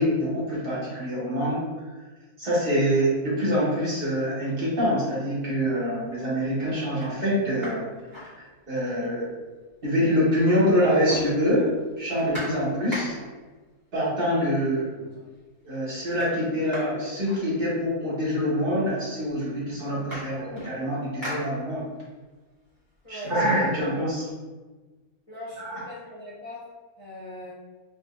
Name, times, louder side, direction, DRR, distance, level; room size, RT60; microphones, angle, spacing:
voice 1, 0.0-1.6 2.4-7.9 8.2-8.3 8.7-9.3 9.8-11.7 12.0-13.1 13.9-14.9 15.6-21.8 23.1-24.3 25.6-25.8, equal, 40° right, -8 dB, 1.3 m, -25 dB
sound 1, 5.7-5.9 6.4-6.5 6.9-9.0 9.3-9.4 9.6-10.5 10.7-13.5 14.4-14.5 14.9-15.4 15.6-18.1 18.9-19.0 19.3-22.1 22.5-24.2, equal, 15° right, 1.4 m, -41 dB
voice 2, 25.3-26.7 27.0-27.5, left 1 dB, 30° left, -10 dB, 0.6 m, -40 dB
4.0 x 3.2 x 2.5 m, 1.3 s
omnidirectional pair, 1.5 m